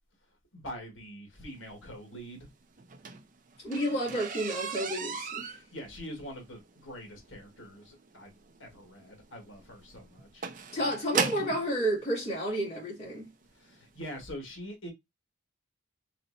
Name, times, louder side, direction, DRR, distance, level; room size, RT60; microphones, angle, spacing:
voice 1, 0.5-2.5 5.5-8.3 8.6-10.4 13.6-14.9, equal, 65° left, 1.7 m, -44 dB
sound 1, 2.8-11.7 12.6-12.7 13.2-13.4 13.7-13.8 14.1-14.2, right 5 dB, 40° right, 0.4 m, -36 dB
voice 2, 3.6-5.5 10.7-13.3, right 1 dB, 30° left, 2.6 m, -31 dB
4.2 x 4.0 x 2.6 m
head